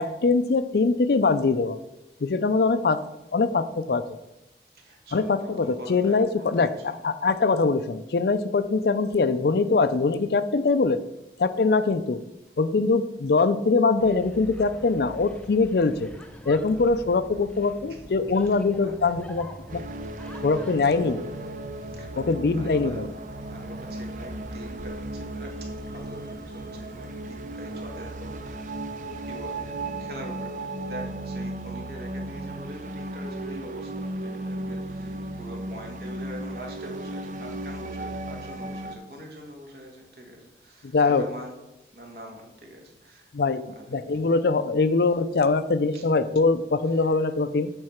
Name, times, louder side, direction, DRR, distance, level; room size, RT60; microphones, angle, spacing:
voice 1, 0.0-1.8 2.2-3.0 3.3-4.0 5.1-11.0 11.4-12.2 12.6-16.1 16.5-19.5 19.7-19.8 20.4-21.2 22.2-23.1 40.9-41.2 43.3-47.7, left 4 dB, 65° left, 12 dB, 0.5 m, -23 dB
voice 2, 4.7-7.0 17.9-18.0 18.8-18.9 20.3-20.5 21.7-41.6 41.9-43.3 43.7-44.0 45.9-46.0 46.9-47.1, equal, 60° right, 1 dB, 1.6 m, -44 dB
sound 1, 14.0-30.0, equal, 5° left, 0.5 m, -45 dB
sound 2, 19.7-39.0, right 2 dB, 45° right, 0.5 m, -35 dB
7.8 x 4.6 x 5.8 m, 0.92 s
head